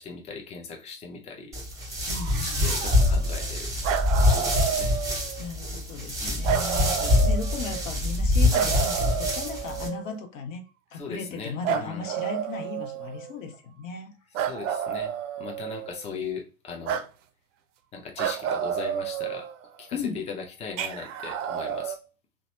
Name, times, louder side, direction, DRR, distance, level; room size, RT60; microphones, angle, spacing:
voice 1, 0.0-1.6 2.4-3.7 4.1-5.0 6.2-6.5 6.9-7.1 10.9-12.0 14.3-17.1 17.9-19.5 19.8-22.0, left 5 dB, 15° left, 0.6 m, -39 dB
sound 1, 1.5-9.9, left 2 dB, 10° right, 1.0 m, -25 dB
voice 2, 2.1-2.7 5.4-10.6 10.9-14.1 19.9-20.2, left 5 dB, 65° left, 0.7 m, -36 dB
sound 2, 2.1-3.5 3.8-5.5 6.4-7.9 8.5-10.1 11.6-13.3 14.3-16.0 16.9-17.1 18.2-19.8 20.8-22.0, right 9 dB, 60° right, 0.5 m, -31 dB
2.9 x 2.1 x 2.8 m
figure-of-eight pair, 80°, 41 cm